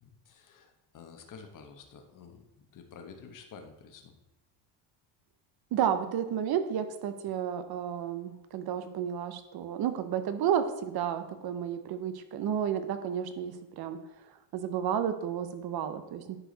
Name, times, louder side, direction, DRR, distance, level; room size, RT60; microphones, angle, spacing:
voice 1, 0.0-4.2, left 5 dB, 40° left, 5 dB, 1.2 m, -50 dB
voice 2, 5.7-14.0 14.5-16.4, right 9 dB, 50° right, 10 dB, 0.9 m, -31 dB
10.0 x 4.8 x 4.0 m, 0.93 s
cardioid pair, 115°, 48 cm